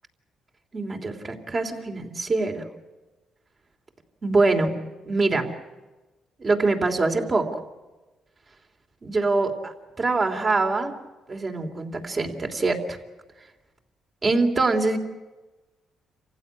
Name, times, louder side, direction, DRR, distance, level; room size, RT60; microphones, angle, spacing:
voice 1, 0.7-2.6 4.2-5.5 6.4-7.6 9.0-10.9 11.3-13.0 14.2-15.0, right 3 dB, 35° right, 4 dB, 3.2 m, -24 dB
27.5 x 15.5 x 9.8 m, 1.1 s
cardioid pair, 90°, 0 cm